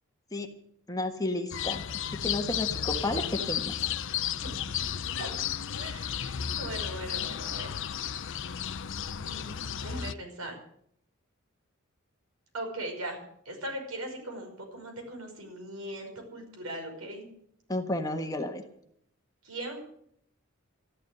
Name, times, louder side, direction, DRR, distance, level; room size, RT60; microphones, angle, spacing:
voice 1, 0.9-1.8 2.2-3.7 17.7-18.6, left 2 dB, 15° left, 4 dB, 1.4 m, -32 dB
sound 1, 1.5-10.1, left 9 dB, 60° left, 0.6 m, -33 dB
voice 2, 4.9-5.3 5.7-7.7 8.1-8.3 9.2-10.6 12.5-13.2 13.5-17.2 19.4-19.8, right 1 dB, 85° right, 3 dB, 5.5 m, -40 dB
13.5 x 12.0 x 7.8 m, 0.69 s
head